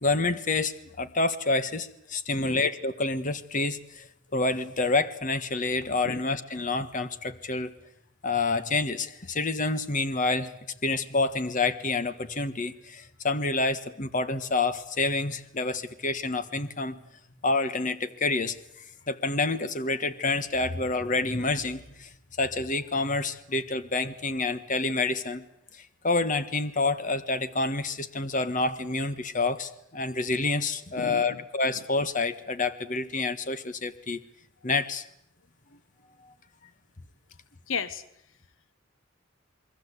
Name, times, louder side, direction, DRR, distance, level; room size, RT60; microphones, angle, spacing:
voice 1, 0.0-4.1 4.3-7.7 8.2-17.0 17.4-18.6 19.1-22.1 22.4-25.5 25.7-34.2 34.6-35.0 36.2-36.3, left 3 dB, 40° left, 12 dB, 1.5 m, -28 dB
voice 2, 2.3-2.6 6.0-6.2 31.0-31.4 35.7-35.8 37.7-38.0, left 5 dB, 80° left, 14 dB, 1.2 m, -34 dB
28.0 x 22.5 x 8.4 m, 0.74 s
head